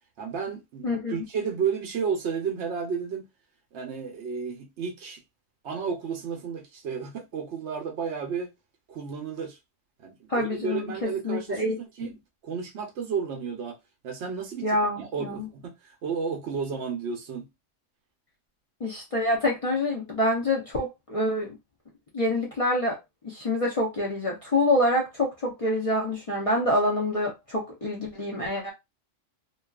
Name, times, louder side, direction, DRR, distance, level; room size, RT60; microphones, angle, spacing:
voice 1, 0.2-3.3 3.7-5.2 5.6-8.5 8.9-9.6 10.0-12.2 12.4-13.8 14.0-17.5, right 6 dB, 65° right, 0.9 m, -32 dB
voice 2, 0.8-1.1 10.3-12.1 14.6-15.5 18.8-21.6 22.1-23.0 23.2-28.7, left 1 dB, 40° left, 0.5 m, -26 dB
2.7 x 2.3 x 2.3 m
omnidirectional pair, 1.3 m